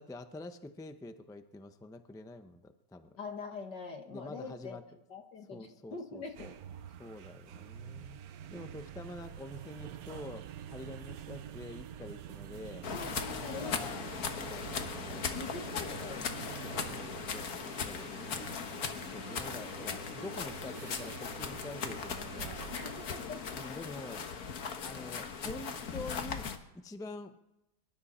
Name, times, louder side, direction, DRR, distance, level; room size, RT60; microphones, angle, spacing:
voice 1, 0.0-3.2 4.1-4.8 5.5-6.5 7.0-8.2 8.5-12.9 13.2-14.0 14.4-15.6 16.7-18.5 19.0-22.6 23.5-24.3 24.8-26.5 26.7-27.4, left 2 dB, 5° left, 8 dB, 0.3 m, -46 dB
voice 2, 3.2-4.8 5.1-6.4 12.9-14.2 15.3-16.9 18.9-19.4 22.7-23.6, left 4 dB, 85° left, 4 dB, 2.5 m, -44 dB
sound 1, 6.2-23.3, right 10 dB, 65° right, 1.2 m, -47 dB
sound 2, 12.8-26.6, left 6 dB, 60° left, 1.6 m, -39 dB
24.5 x 12.5 x 4.3 m, 0.89 s
omnidirectional pair, 1.8 m